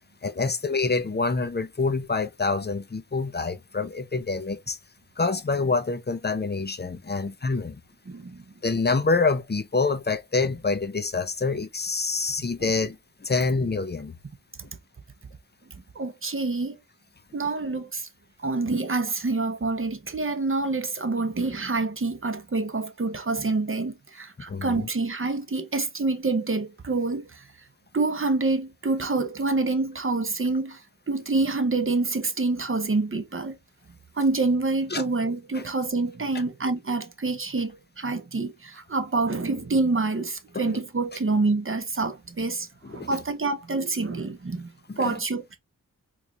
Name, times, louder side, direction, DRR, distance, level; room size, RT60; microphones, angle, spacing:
voice 1, 0.2-4.8 5.2-7.8 8.6-14.1 24.5-24.9 34.9-35.0 35.5-35.6 40.5-40.7 42.8-43.1 44.9-45.1, left 4 dB, 30° left, 0.5 m, -26 dB
voice 2, 8.1-8.4 14.6-14.7 15.9-16.8 17.3-18.1 18.4-27.5 27.9-33.6 34.1-44.7 45.0-45.6, right 3 dB, 40° right, 0.7 m, -27 dB
4.0 x 3.1 x 2.4 m
wide cardioid pair, 65°, 33 cm